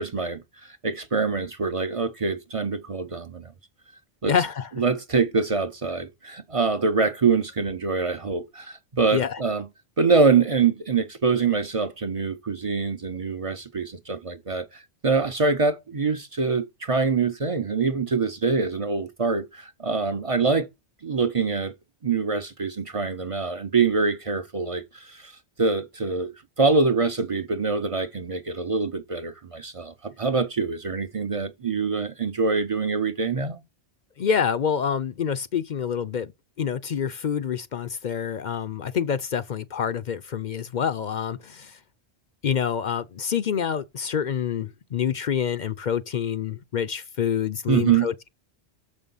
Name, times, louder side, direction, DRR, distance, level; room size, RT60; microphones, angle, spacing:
voice 1, 0.0-3.5 4.2-4.3 4.8-9.7 10.0-20.7 21.0-21.7 22.0-25.3 25.6-33.6 47.7-48.1, right 4 dB, 35° right, 0.6 m, -25 dB
voice 2, 4.2-4.7 9.1-9.4 34.2-36.3 36.6-41.8 42.4-48.1, left 8 dB, 55° left, 0.6 m, -27 dB
6.7 x 5.2 x 5.4 m
omnidirectional pair, 1.1 m